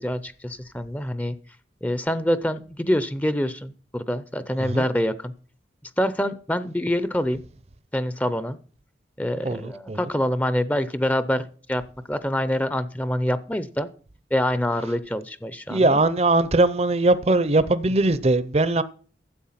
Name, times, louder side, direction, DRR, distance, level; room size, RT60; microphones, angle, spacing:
voice 1, 0.0-1.3 1.8-5.3 6.0-7.4 7.9-8.6 9.2-11.8 12.1-13.9 14.3-16.0, equal, 10° left, 0.6 m, -25 dB
voice 2, 9.4-10.0 15.7-18.8, right 2 dB, 35° right, 0.6 m, -20 dB
13.0 x 8.1 x 5.7 m
head